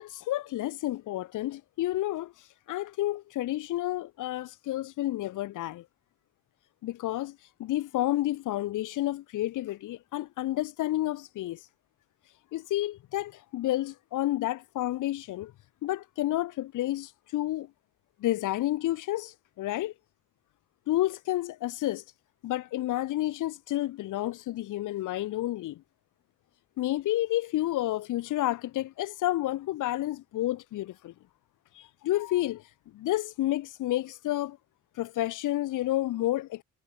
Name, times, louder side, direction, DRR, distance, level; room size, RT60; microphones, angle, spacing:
voice 1, 0.0-5.8 6.8-11.7 12.5-15.5 15.8-17.7 18.2-19.9 20.9-22.0 22.4-25.8 26.8-31.1 31.7-32.6 32.9-34.6 35.0-36.6, left 15 dB, 85° left, 6.7 m, -30 dB
cardioid pair, 90°, 30 cm